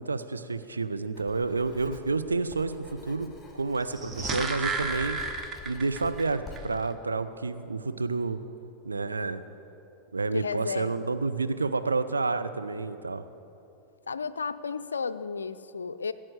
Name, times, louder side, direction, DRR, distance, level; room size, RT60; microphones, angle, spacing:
voice 1, 0.0-5.2 5.6-8.4 8.8-9.4 10.1-13.2, right 3 dB, 75° right, 10 dB, 0.6 m, -30 dB
Writing, 1.1-6.6, left 4 dB, 10° left, 2.6 m, -48 dB
sound 1, 3.8-6.3 6.6-6.7, right 4 dB, 20° right, 1.0 m, -32 dB
voice 2, 10.3-11.1 14.1-16.1, left 5 dB, 75° left, 14 dB, 0.4 m, -33 dB
16.5 x 7.6 x 8.0 m, 2.9 s
figure-of-eight pair, 90°, 0 cm